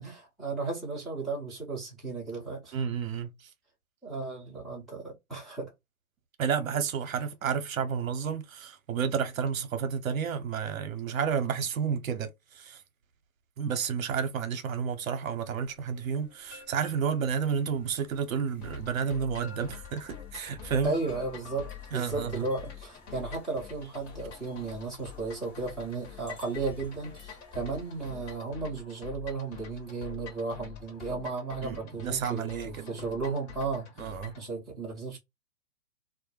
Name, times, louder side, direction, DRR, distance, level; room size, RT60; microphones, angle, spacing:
voice 1, 0.0-2.8 4.0-5.7 20.8-33.9 34.4-35.2, right 3 dB, ahead, 0.5 m, -34 dB
voice 2, 2.7-3.5 6.4-12.8 13.6-20.9 21.9-22.5 31.6-32.9 34.0-34.4, right 7 dB, 65° right, 0.7 m, -31 dB
sound 1, 15.4-28.4, left 3 dB, 25° left, 0.9 m, -53 dB
sound 2, 18.6-34.5, left 9 dB, 50° left, 1.2 m, -46 dB
2.2 x 2.1 x 3.0 m
hypercardioid pair, 125°, 44 cm